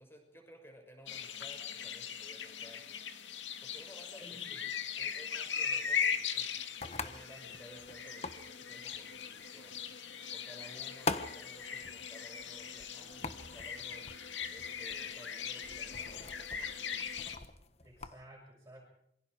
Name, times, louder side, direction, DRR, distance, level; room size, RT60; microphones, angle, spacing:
voice 1, 0.0-2.8 3.6-4.4 5.0-6.7 7.0-9.2 9.5-9.8 10.3-16.8, equal, 15° left, 3 dB, 6.4 m, -56 dB
sound 1, 1.1-17.4, left 7 dB, 85° left, 2.2 m, -39 dB
voice 2, 4.2-4.6 17.8-18.8, right 1 dB, 15° right, -3 dB, 6.3 m, -54 dB
sound 2, 5.7-18.2, left 3 dB, 35° left, 1.3 m, -45 dB
27.5 x 24.0 x 5.0 m, 0.72 s
head